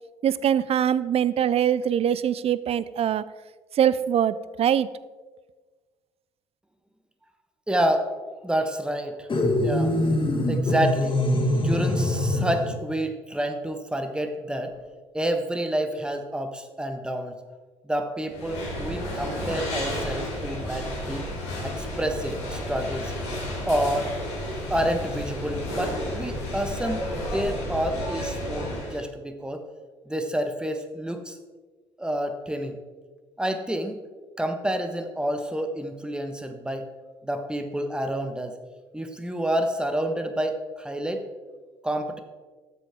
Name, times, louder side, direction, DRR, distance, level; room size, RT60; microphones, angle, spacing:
voice 1, 0.2-3.2 3.8-4.9, right 9 dB, 45° right, 17 dB, 0.5 m, -23 dB
voice 2, 7.7-8.1 8.4-9.3 9.6-9.9 10.5-11.2 11.5-14.7 15.1-17.4 17.8-21.3 21.6-23.1 23.7-24.1 24.7-29.6 30.1-31.4 32.0-32.8 33.4-34.0 34.4-36.9 37.2-38.6 38.9-41.2 41.8-42.2, right 1 dB, 5° right, 7 dB, 1.2 m, -28 dB
sound 1, 9.3-12.8, left 1 dB, 35° left, 2.0 m, -23 dB
sound 2, 18.3-29.0, left 1 dB, 85° left, 3.2 m, -32 dB
12.5 x 7.6 x 3.6 m, 1.4 s
hypercardioid pair, 50°, 15 cm